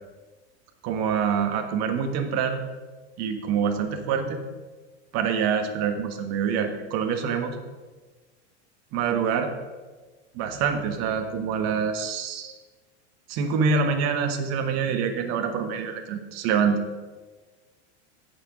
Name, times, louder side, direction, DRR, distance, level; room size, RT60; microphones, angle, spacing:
voice 1, 0.8-2.6 3.2-4.4 5.1-7.6 8.9-9.5 10.3-12.5 13.3-16.8, right 6 dB, 50° right, 6 dB, 1.5 m, -26 dB
17.0 x 6.2 x 3.8 m, 1.3 s
hypercardioid pair, 110°, 34 cm